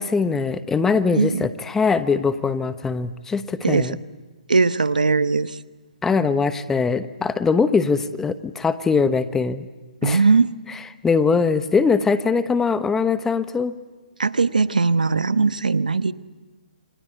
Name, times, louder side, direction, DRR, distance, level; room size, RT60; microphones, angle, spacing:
voice 1, 0.0-4.0 6.0-9.7 10.0-10.2 11.0-13.7, left 5 dB, 10° left, 12 dB, 1.0 m, -21 dB
voice 2, 1.1-1.5 3.6-3.9 4.5-5.6 10.0-10.5 14.2-16.1, right 4 dB, 90° right, 14 dB, 1.0 m, -19 dB
28.0 x 25.0 x 8.1 m, 1.2 s
hypercardioid pair, 140°, 4 cm